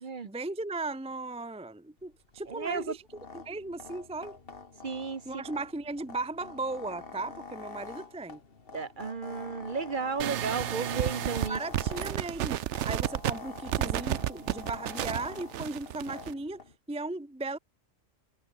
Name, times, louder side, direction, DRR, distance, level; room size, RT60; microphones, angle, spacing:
voice 1, 0.2-3.0 3.3-4.4 5.3-8.4 11.5-12.6 12.8-17.6, right 2 dB, 5° right, 0.5 m, -37 dB
sound 1, 2.0-16.7, left 4 dB, 50° left, 2.0 m, -46 dB
voice 2, 2.5-3.0 4.8-5.4 8.7-11.6, right 5 dB, 40° right, 1.2 m, -34 dB
sound 2, 10.2-16.3, right 12 dB, 70° right, 0.9 m, -32 dB
omnidirectional pair, 1.3 m